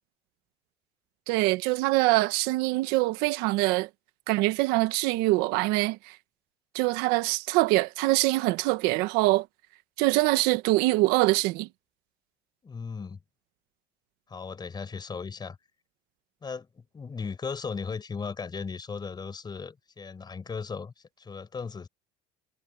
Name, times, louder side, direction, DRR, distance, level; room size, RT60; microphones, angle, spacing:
voice 1, 1.3-3.9 4.3-6.2 6.7-9.5 10.0-11.7, right 20 dB, 80° right, 1.4 m, -24 dB
voice 2, 12.6-13.2 14.3-15.6 16.4-21.9, left 5 dB, 25° left, 5.6 m, -37 dB
cardioid pair, 105°, 16 cm